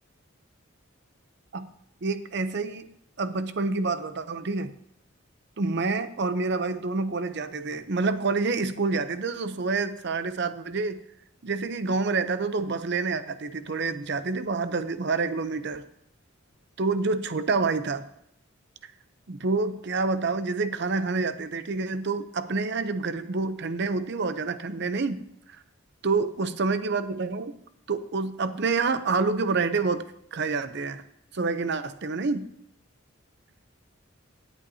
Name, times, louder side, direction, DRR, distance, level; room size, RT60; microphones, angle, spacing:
voice 1, 2.0-2.9 3.2-4.7 5.6-11.0 11.4-15.8 16.8-18.1 19.3-25.3 26.0-27.6 27.9-30.0 30.3-31.0 31.3-32.5, right 4 dB, 55° right, 11 dB, 0.6 m, -27 dB
17.0 x 8.3 x 2.8 m, 0.75 s
head